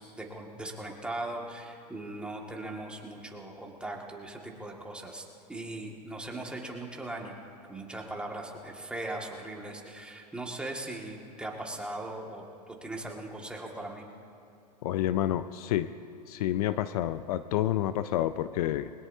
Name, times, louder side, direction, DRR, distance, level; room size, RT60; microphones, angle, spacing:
voice 1, 0.0-7.4 7.7-12.4 12.8-14.0, right 2 dB, 5° right, -1 dB, 1.9 m, -39 dB
voice 2, 14.8-15.9 16.3-18.9, left 12 dB, 65° left, 13 dB, 0.5 m, -29 dB
21.5 x 19.5 x 2.7 m, 2.6 s
hypercardioid pair, 115°, 21 cm